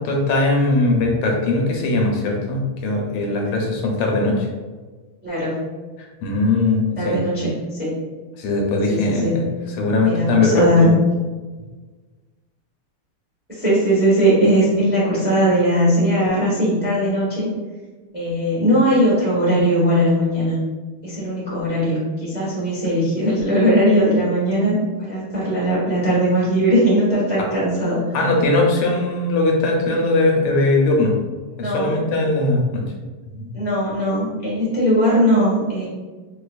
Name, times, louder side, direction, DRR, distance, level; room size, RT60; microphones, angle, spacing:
voice 1, 0.0-4.5 6.0-7.2 8.4-9.4 9.8-10.9 28.1-31.1 31.6-32.8 33.3-33.5, left 2 dB, 85° left, 0 dB, 1.6 m, -20 dB
voice 2, 5.2-5.6 7.0-7.9 8.9-9.4 10.0-10.9 13.5-17.5 18.1-20.6 21.0-28.0 31.6-32.0 33.5-35.9, equal, 10° right, -9 dB, 0.7 m, -19 dB
4.7 x 2.3 x 2.4 m, 1.3 s
omnidirectional pair, 2.4 m